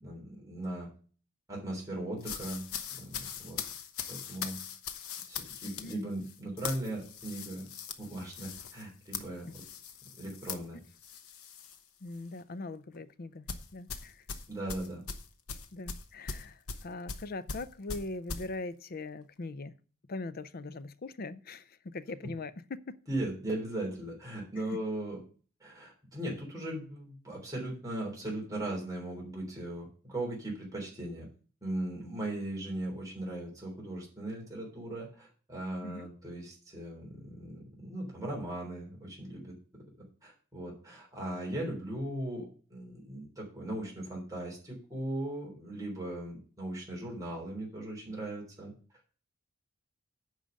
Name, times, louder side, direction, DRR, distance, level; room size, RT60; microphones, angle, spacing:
voice 1, 0.0-0.9 1.5-2.6 2.9-3.6 4.1-4.6 5.3-7.7 8.0-9.6 10.2-10.8 14.5-15.0 23.1-25.2 25.6-31.3 31.6-39.6 40.2-48.7, right 1 dB, 15° right, 3.5 m, -38 dB
sound 1, 2.2-11.8 12.1-12.4 13.5-18.5, left 6 dB, 85° left, 1.0 m, -41 dB
voice 2, 5.6-6.1 9.5-9.6 12.0-13.4 13.7-14.2 15.7-19.8 20.1-23.0 24.6-24.8 35.8-36.1, left 3 dB, 45° left, 0.6 m, -41 dB
9.1 x 5.0 x 7.7 m
head